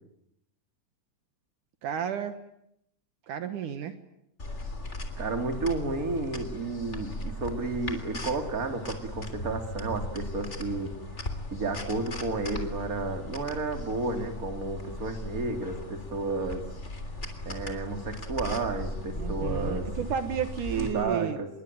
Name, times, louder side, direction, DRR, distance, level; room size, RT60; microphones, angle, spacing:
voice 1, 1.8-2.4 3.3-4.0 19.1-21.4, right 8 dB, 70° right, 9 dB, 2.8 m, -32 dB
sound 1, 4.4-20.9, left 1 dB, 20° left, 3.3 m, -38 dB
voice 2, 5.2-10.9 11.5-16.6 17.4-19.9 20.8-21.5, right 3 dB, 25° right, 5 dB, 3.2 m, -32 dB
26.5 x 22.5 x 9.3 m, 0.77 s
omnidirectional pair, 3.8 m